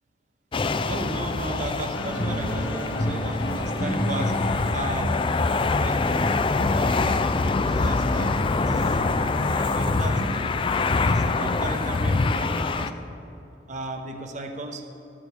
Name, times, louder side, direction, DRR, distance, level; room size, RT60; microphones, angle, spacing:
sound 1, 0.5-12.9, left 3 dB, 30° left, 0.4 m, -25 dB
voice 1, 0.8-4.3 4.7-6.4 6.7-9.0 9.5-10.6 11.0-12.9 13.7-14.8, right 2 dB, 40° right, 4 dB, 0.8 m, -35 dB
sound 2, 1.9-10.3, equal, 70° left, 1.3 m, -29 dB
14.0 x 12.5 x 3.4 m, 2.8 s
head